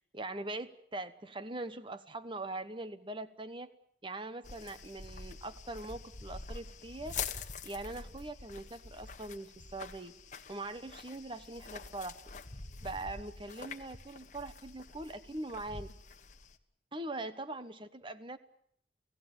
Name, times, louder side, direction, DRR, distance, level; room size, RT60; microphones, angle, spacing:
voice 1, 0.1-3.7 4.0-7.2 7.6-10.1 10.5-12.2 12.8-15.9 16.9-18.4, right 2 dB, 30° right, 12 dB, 1.2 m, -42 dB
sound 1, 4.4-16.6, left 5 dB, 45° left, 1.4 m, -46 dB
28.5 x 16.5 x 8.8 m, 0.70 s
head